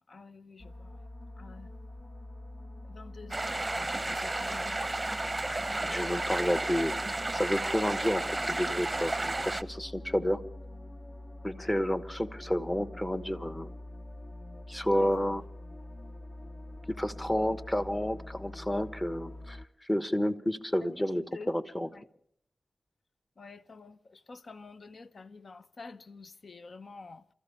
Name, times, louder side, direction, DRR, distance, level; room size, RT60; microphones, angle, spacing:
voice 1, 0.1-0.9 1.4-1.7 2.9-5.0 11.6-11.7 14.8-15.1 21.3-21.5 21.9-22.0 23.4-27.2, left 4 dB, 65° left, 0.7 m, -49 dB
sound 1, 0.6-19.7, left 1 dB, 40° left, 1.0 m, -45 dB
sound 2, 3.3-9.6, right 2 dB, 25° right, 0.7 m, -32 dB
voice 2, 5.8-10.4 11.4-13.7 14.7-15.4 16.9-21.9, equal, 20° left, 1.3 m, -31 dB
28.5 x 14.5 x 3.5 m
cardioid pair, 55°, 0 cm